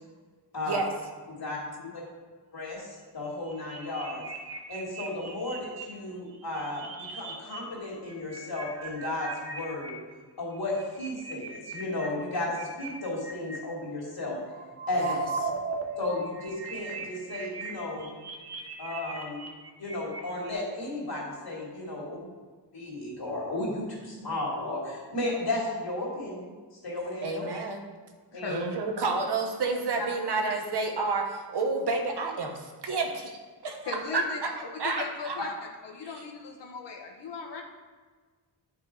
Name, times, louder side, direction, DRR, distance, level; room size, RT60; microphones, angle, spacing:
voice 1, 2.5-4.3 4.7-9.9 10.4-14.4 14.9-15.1 16.0-18.1 18.8-19.4 19.8-22.2 22.7-27.4 28.3-28.5, left 2 dB, 60° left, -3 dB, 2.7 m, -34 dB
sound 1, 3.2-5.8 6.3-7.6 7.8-9.9 10.5-13.6 14.3-15.8 16.1-20.5, right 4 dB, 35° right, 1.1 m, -38 dB
voice 2, 14.9-15.2 22.0-22.3 27.2-27.8 28.5-33.3 33.6-35.4 36.0-36.2, right 3 dB, 70° right, 3 dB, 1.2 m, -30 dB
voice 3, 28.3-28.6 33.8-35.5 35.8-37.6, left 5 dB, 75° left, 1 dB, 1.3 m, -38 dB
10.5 x 4.6 x 4.8 m, 1.4 s
wide cardioid pair, 160°, 42 cm